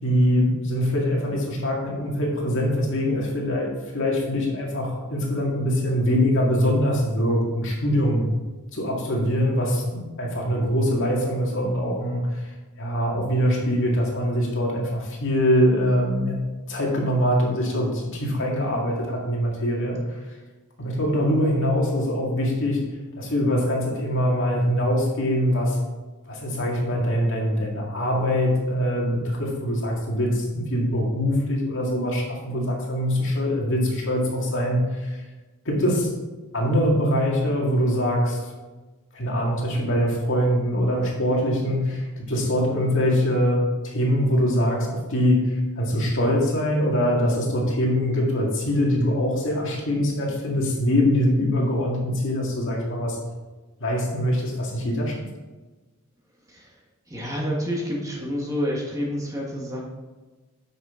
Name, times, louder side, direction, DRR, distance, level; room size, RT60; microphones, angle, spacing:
voice 1, 0.0-8.3 8.7-12.5 12.8-16.4 16.7-20.2 20.8-22.9 23.2-25.8 26.3-35.2 35.7-36.1 36.5-38.4 39.1-53.2 53.8-55.3, equal, 55° left, -2 dB, 2.0 m, -23 dB
voice 2, 57.1-59.8, equal, 15° right, -2 dB, 1.3 m, -28 dB
9.0 x 6.1 x 3.7 m, 1.2 s
head